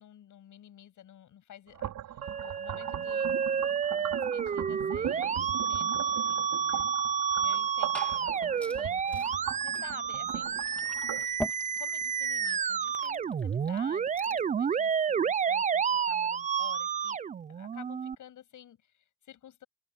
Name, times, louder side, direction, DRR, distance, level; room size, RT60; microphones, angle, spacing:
voice 1, 0.0-3.5 3.9-6.9 7.4-10.6 11.8-17.2 17.5-19.7, left 10 dB, 65° left, 7.3 m, -52 dB
sound 1, 1.7-11.3, right 11 dB, 80° right, 5.5 m, -40 dB
Musical instrument, 2.2-18.2, right 7 dB, 25° right, 0.4 m, -30 dB
Glass / Fill (with liquid), 7.4-14.5, left 1 dB, 5° left, 2.8 m, -45 dB
open air
cardioid pair, 145°, 32 cm